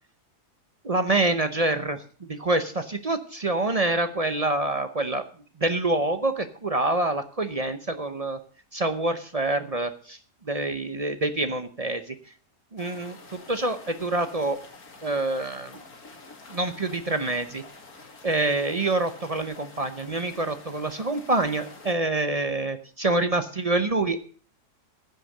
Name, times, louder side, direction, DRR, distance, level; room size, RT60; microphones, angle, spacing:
voice 1, 0.8-5.2 5.6-8.4 8.7-12.1 12.7-13.2 13.5-14.6 15.0-15.8 16.5-17.6 18.2-24.2, right 2 dB, 40° right, 9 dB, 0.5 m, -26 dB
sound 1, 12.8-21.9, left 3 dB, 60° left, 2.5 m, -48 dB
15.5 x 6.5 x 6.6 m, 0.42 s
omnidirectional pair, 1.7 m